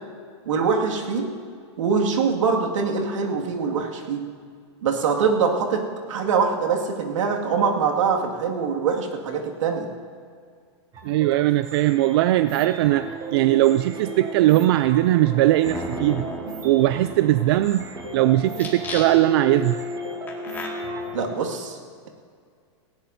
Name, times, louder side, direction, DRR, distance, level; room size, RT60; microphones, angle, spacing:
voice 1, 0.5-1.3 1.8-4.2 4.8-9.9 21.1-21.8, right 5 dB, 85° right, 1 dB, 2.2 m, -23 dB
sound 1, 10.9-21.1, right 2 dB, 25° right, 3.6 m, -35 dB
voice 2, 11.0-16.2 16.6-17.9 18.1-19.8, right 15 dB, 55° right, 12 dB, 0.4 m, -19 dB
sound 2, 15.7-18.1 18.5-19.4 20.3-20.7, left 2 dB, 15° left, 2.1 m, -35 dB
18.0 x 17.0 x 2.8 m, 2.2 s
supercardioid pair, 145°, 16 cm